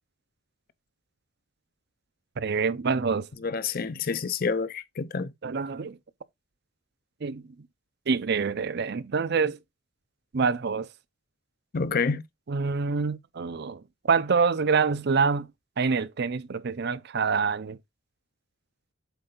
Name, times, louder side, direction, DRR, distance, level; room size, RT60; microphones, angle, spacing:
voice 1, 2.4-3.3 5.4-6.0 7.2-7.4 8.1-9.6 10.3-10.9 12.5-13.8 14.1-15.5 15.8-17.8, right 5 dB, 55° right, 0.6 m, -26 dB
voice 2, 3.4-5.3 11.7-12.2, left 5 dB, 50° left, 0.6 m, -28 dB
8.1 x 3.8 x 3.8 m
head